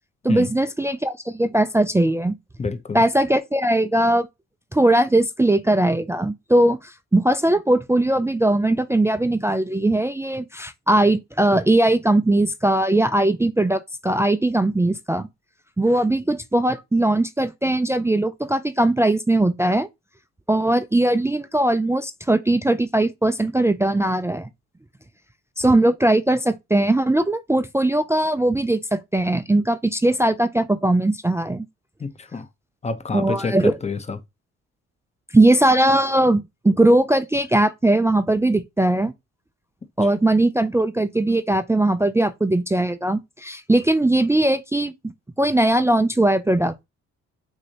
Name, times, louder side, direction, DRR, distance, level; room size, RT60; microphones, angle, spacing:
voice 1, 0.2-2.3 2.9-4.3 4.7-15.3 15.8-19.9 20.5-24.5 25.6-31.6 33.1-33.8 35.3-39.1 40.0-44.9 45.4-46.8, right 1 dB, 10° right, 0.3 m, -20 dB
voice 2, 2.6-3.0 32.0-32.5 32.8-34.2, left 4 dB, 20° left, 0.7 m, -28 dB
6.2 x 2.7 x 2.9 m
cardioid pair, 90°, 30 cm